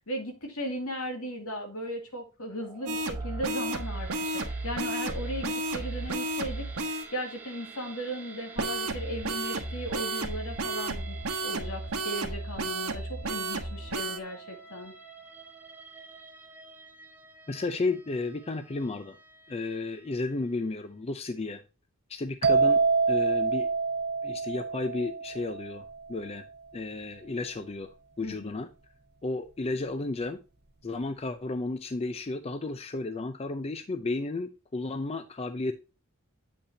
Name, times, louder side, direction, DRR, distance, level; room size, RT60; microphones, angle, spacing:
voice 1, 0.0-6.7 7.1-14.9 28.2-28.6, equal, 70° left, 3 dB, 2.4 m, -37 dB
sound 1, 2.5-20.8, right 5 dB, 10° right, 1.2 m, -48 dB
sound 2, 2.9-7.0 8.6-14.2, right 2 dB, 70° right, 1.3 m, -33 dB
voice 2, 17.5-19.2 19.5-21.6 22.1-22.8 23.1-23.7 24.2-26.4 26.7-27.9 28.2-28.7 29.2-30.4 30.8-35.7, left 3 dB, 25° left, 9 dB, 0.5 m, -33 dB
sound 3, 22.4-26.1, right 4 dB, 45° right, 0.7 m, -26 dB
8.4 x 5.6 x 2.8 m, 0.31 s
head